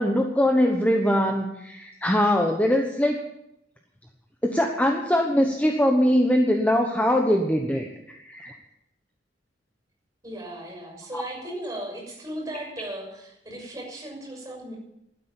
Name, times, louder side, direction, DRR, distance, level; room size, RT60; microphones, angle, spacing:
voice 1, 0.0-3.2 4.4-8.5 11.1-11.2, equal, 10° left, 2 dB, 1.1 m, -22 dB
voice 2, 10.2-14.7, right 1 dB, 20° right, 0 dB, 6.3 m, -36 dB
12.5 x 9.9 x 8.6 m, 0.82 s
head